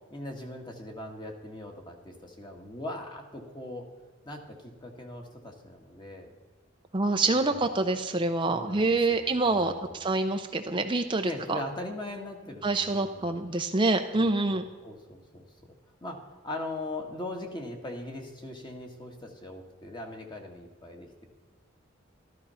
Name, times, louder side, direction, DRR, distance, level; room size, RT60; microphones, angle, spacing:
voice 1, 0.1-3.9 4.3-6.3 7.4-7.7 8.5-10.0 11.2-13.4 14.1-15.5 16.0-21.2, left 1 dB, 25° left, 2 dB, 1.8 m, -40 dB
voice 2, 6.9-11.6 12.6-14.6, right 2 dB, 25° right, 5 dB, 0.7 m, -26 dB
13.5 x 13.5 x 5.7 m, 1.4 s
head